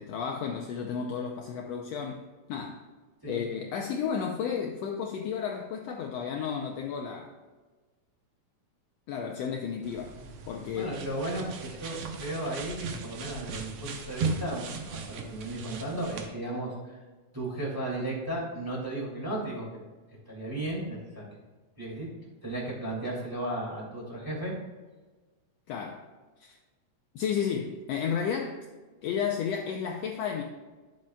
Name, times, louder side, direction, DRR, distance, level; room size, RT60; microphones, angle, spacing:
voice 1, 0.0-2.8 3.3-7.3 9.1-10.1 10.5-11.0 25.7-26.1 26.4-26.6 27.1-28.7 29.0-30.4, left 7 dB, 75° left, 2 dB, 1.6 m, -32 dB
sound 1, 9.8-16.3, right 5 dB, 70° right, 1.4 m, -38 dB
voice 2, 10.7-17.0 17.3-19.7 20.3-21.2 21.8-22.1 22.4-24.5, right 1 dB, 10° right, -5 dB, 1.9 m, -35 dB
10.5 x 7.6 x 2.3 m, 1.3 s
omnidirectional pair, 3.4 m